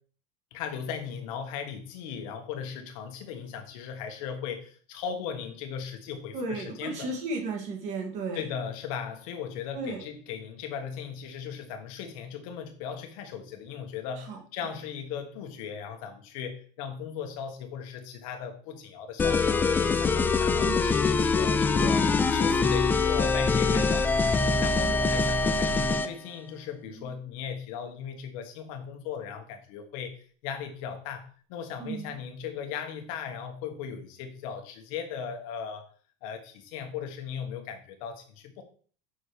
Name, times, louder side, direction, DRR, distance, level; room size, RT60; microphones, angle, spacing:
voice 1, 0.5-7.1 8.3-24.1 24.6-35.9 36.2-38.6, left 7 dB, 65° left, 6 dB, 1.4 m, -37 dB
voice 2, 6.3-8.5 9.7-10.0 14.2-14.4 20.6-20.9 23.7-23.9 24.8-25.1 26.8-27.1 31.8-32.1, right 3 dB, 40° right, 2 dB, 2.1 m, -35 dB
sound 1, 19.2-26.1, left 4 dB, 10° left, 0.3 m, -24 dB
6.4 x 4.9 x 4.9 m, 0.43 s
cardioid pair, 175°, 18 cm